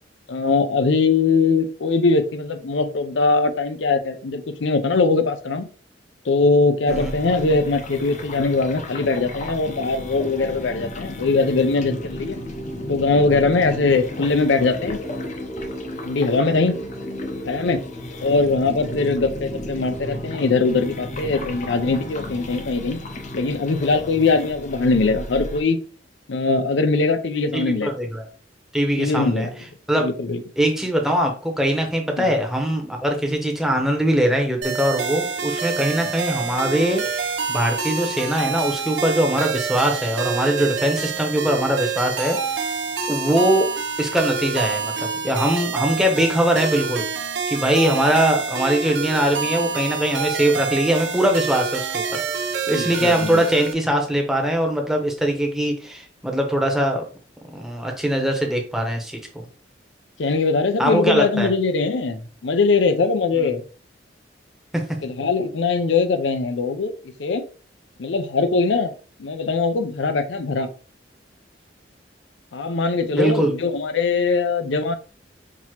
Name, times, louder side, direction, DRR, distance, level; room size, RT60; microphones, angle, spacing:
voice 1, 0.3-5.7 6.2-12.4 12.9-15.0 16.0-16.8 17.5-17.8 18.2-23.0 23.3-25.8 26.3-27.9 29.0-29.5 30.0-30.4 32.2-32.3 52.7-53.4 60.2-63.6 65.0-67.4 68.0-68.9 69.2-70.7 72.5-74.9, left 3 dB, 80° left, 10 dB, 0.5 m, -21 dB
sound 1, 6.9-25.6, left 1 dB, 40° left, 0.6 m, -33 dB
voice 2, 27.5-28.3 28.7-29.5 29.9-30.1 30.6-42.7 43.1-43.7 44.0-47.0 47.5-52.2 52.7-57.0 57.5-59.4 60.8-61.5 63.4-63.5 73.1-73.5, right 1 dB, 5° right, 2 dB, 0.9 m, -21 dB
sound 2, 34.6-53.7, right 5 dB, 80° right, 0.7 m, -27 dB
6.0 x 2.8 x 2.9 m, 0.39 s
head